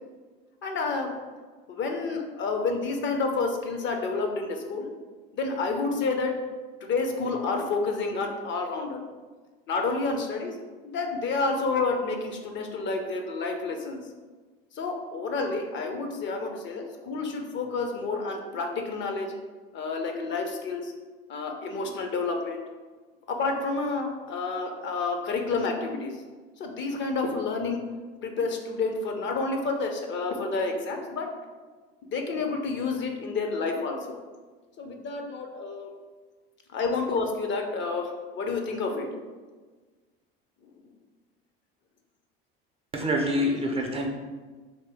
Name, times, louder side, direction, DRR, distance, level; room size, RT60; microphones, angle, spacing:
voice 1, 0.6-1.1 1.7-4.9 5.3-6.4 6.9-9.0 9.7-10.6 10.8-14.0 14.7-19.3 19.7-20.9 21.3-22.6 23.3-26.2 26.6-27.8 28.2-31.3 32.1-34.2 34.8-35.9 36.7-39.1, left 3 dB, 40° left, 4 dB, 0.5 m, -29 dB
voice 2, 42.9-44.1, equal, 20° right, 2 dB, 0.4 m, -26 dB
2.9 x 2.8 x 3.4 m, 1.4 s
hypercardioid pair, 80°, 30 cm